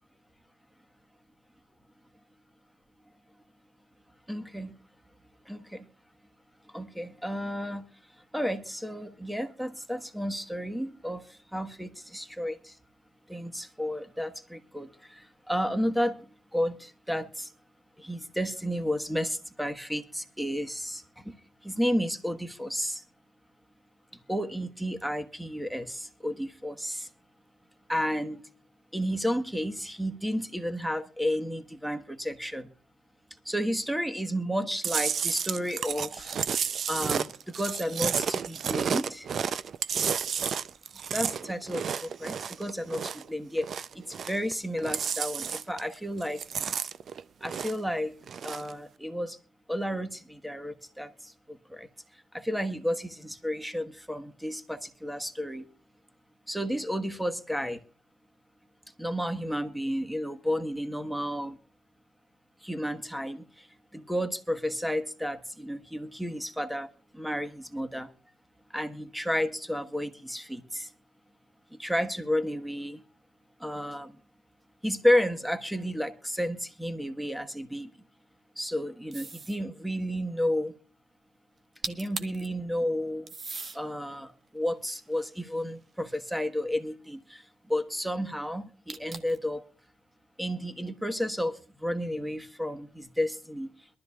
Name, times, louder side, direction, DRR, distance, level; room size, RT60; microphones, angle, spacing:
voice 1, 4.3-4.7 5.5-5.8 6.7-7.8 8.3-12.7 13.3-16.2 16.5-17.5 18.0-21.3 21.6-23.0 24.3-27.1 27.9-28.4 28.9-32.7 33.4-36.3 36.9-39.3 41.1-46.4 47.4-48.2 48.4-49.4 49.7-51.9 52.3-55.6 56.5-57.8 59.0-61.6 62.6-63.7 63.9-66.9 67.1-68.1 68.7-70.9 71.7-73.0 73.6-74.1 74.8-77.9 78.6-80.8 81.9-83.3 83.7-87.4 87.7-89.6 90.4-93.7, equal, ahead, 1.3 m, -32 dB
Chewing mastication, 34.8-43.3 43.6-44.5 44.8-45.9 46.2-47.9 48.2-48.7, right 7 dB, 55° right, 0.5 m, -31 dB
sound 1, 79.1-79.6 81.6-81.7 81.8-82.5 83.3-83.8 84.5-85.9 88.9-89.5, right 4 dB, 40° right, 1.3 m, -39 dB
22.5 x 12.5 x 2.4 m
cardioid pair, 90°, 0 cm